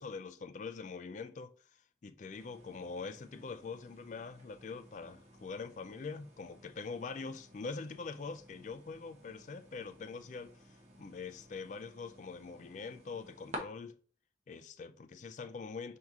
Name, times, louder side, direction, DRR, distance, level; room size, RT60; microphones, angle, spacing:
voice 1, 0.0-1.5 2.0-14.0 14.5-16.0, left 4 dB, 40° left, 0.4 m, -44 dB
sound 1, 2.3-13.6, equal, 40° right, 0.9 m, -54 dB
4.6 x 2.7 x 3.6 m
head